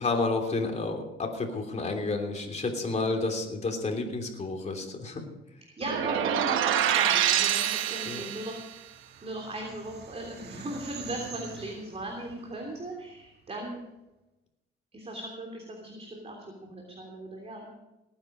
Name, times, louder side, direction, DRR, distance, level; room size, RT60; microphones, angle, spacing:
voice 1, 0.0-5.2 8.0-8.2, left 3 dB, 35° left, 3 dB, 3.2 m, -30 dB
voice 2, 5.8-8.6 9.2-13.8 14.9-16.3 16.7-17.7, right 1 dB, 30° right, 0 dB, 3.3 m, -37 dB
sound 1, 5.8-8.6, right 10 dB, 90° right, 1.0 m, -26 dB
sound 2, 8.3-13.7, right 6 dB, 55° right, 1.5 m, -47 dB
18.5 x 9.7 x 5.2 m, 0.99 s
cardioid pair, 90°, 20 cm